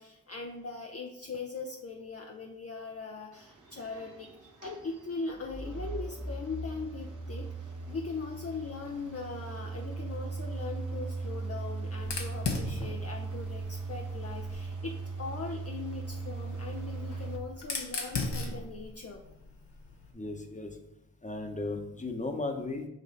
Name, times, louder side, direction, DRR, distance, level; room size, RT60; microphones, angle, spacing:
voice 1, 0.0-19.2, left 4 dB, 35° left, 1 dB, 0.8 m, -40 dB
sound 1, 3.3-17.4, right 3 dB, 45° right, 1.4 m, -39 dB
Fire, 12.0-14.7 15.9-20.1, left 3 dB, 70° left, 1.2 m, -38 dB
voice 2, 20.1-20.8 21.2-22.9, left 2 dB, 15° left, 4 dB, 1.1 m, -35 dB
6.6 x 3.1 x 5.1 m, 0.86 s
supercardioid pair, 45°, 43 cm